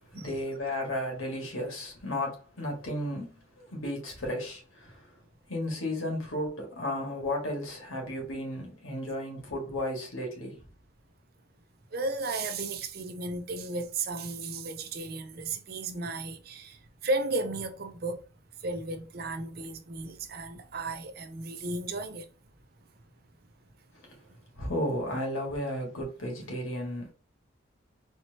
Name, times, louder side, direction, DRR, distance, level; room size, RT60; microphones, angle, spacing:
voice 1, 0.1-5.2 5.5-10.6 23.9-24.2 24.6-27.1, left 1 dB, 90° left, 1.9 m, -34 dB
voice 2, 11.9-16.8 17.0-18.2 18.6-22.2, right 2 dB, 50° right, 0.6 m, -34 dB
4.4 x 2.9 x 2.9 m
head